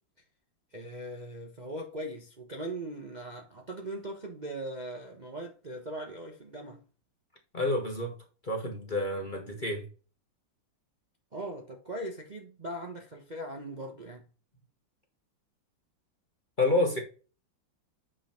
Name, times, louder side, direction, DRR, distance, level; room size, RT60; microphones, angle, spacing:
voice 1, 0.7-6.8 11.3-14.2, right 1 dB, 30° right, 0.9 m, -40 dB
voice 2, 7.5-8.2 8.4-9.9 16.6-17.0, left 2 dB, 30° left, 1.2 m, -29 dB
8.6 x 3.7 x 4.3 m
omnidirectional pair, 2.1 m